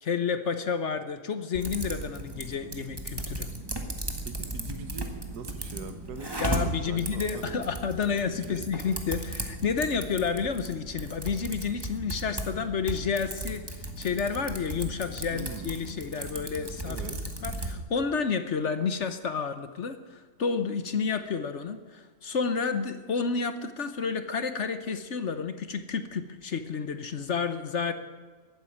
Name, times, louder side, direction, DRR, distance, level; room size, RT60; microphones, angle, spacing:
voice 1, 0.0-3.5 6.4-13.6 14.0-17.0 17.4-27.9, left 5 dB, 50° left, 10 dB, 1.1 m, -30 dB
Typing, 1.5-17.8, right 1 dB, 15° right, 1.6 m, -36 dB
voice 2, 4.2-8.7 15.3-15.7 16.8-17.2, right 5 dB, 80° right, 9 dB, 1.7 m, -42 dB
15.0 x 9.6 x 9.9 m, 1.4 s
omnidirectional pair, 1.7 m